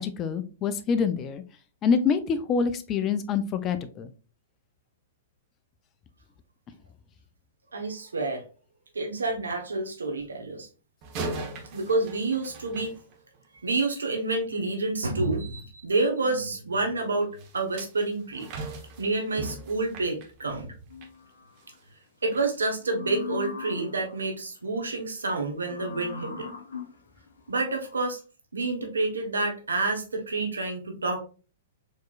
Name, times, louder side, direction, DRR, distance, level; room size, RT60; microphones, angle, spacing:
voice 1, 0.0-1.4 1.8-4.1, left 6 dB, 30° left, 10 dB, 0.5 m, -26 dB
voice 2, 7.7-8.4 8.9-10.7 11.7-12.9 13.6-18.5 19.0-20.7 22.2-26.5 27.5-28.2 28.5-31.2, right 3 dB, 85° right, 4 dB, 1.0 m, -28 dB
sound 1, 11.0-13.6 17.4-21.2 21.6-21.8 22.3-22.5, right 2 dB, 40° right, 1.1 m, -39 dB
sound 2, 20.9-21.7 22.8-24.3 25.6-28.1, left 7 dB, 80° left, 1.0 m, -40 dB
4.5 x 3.0 x 2.4 m, 0.36 s
hypercardioid pair, 115°, 0 cm